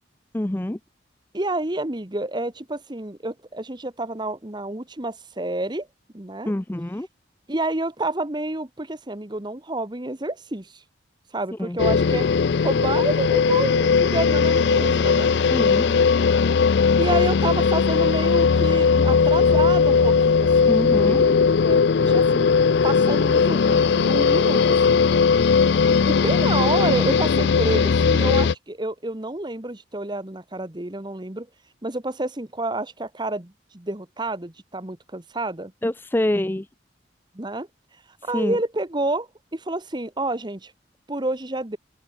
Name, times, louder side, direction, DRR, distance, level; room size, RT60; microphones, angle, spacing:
voice 1, 0.3-0.8 6.5-7.1 11.6-11.8 15.5-15.9 20.7-21.2 35.8-36.7 38.3-38.6, left 1 dB, 10° left, 0.5 m, -25 dB
voice 2, 1.3-5.9 6.1-6.5 7.5-10.7 11.3-12.3 12.6-15.3 17.0-22.5 22.8-25.0 25.9-31.5 31.8-35.7 37.3-37.7 38.2-40.7 41.1-41.8, right 2 dB, 25° right, 1.3 m, -29 dB
sound 1, 11.8-28.5, left 5 dB, 65° left, 0.4 m, -18 dB
open air
head